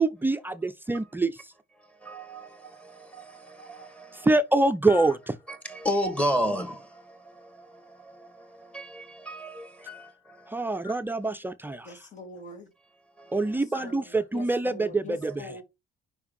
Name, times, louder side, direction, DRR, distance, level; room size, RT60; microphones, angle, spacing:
voice 1, 0.0-1.4 4.2-5.4 10.5-12.0 13.3-15.6, right 2 dB, 10° right, 0.5 m, -25 dB
voice 2, 1.9-4.3 4.9-5.1 5.5-11.0 13.2-13.9 15.3-15.4, equal, 10° left, 1.8 m, -34 dB
voice 3, 11.8-12.7 13.5-14.0 14.3-15.6, left 3 dB, 45° left, 2.7 m, -43 dB
5.4 x 4.7 x 5.2 m
cardioid pair, 110°, 17 cm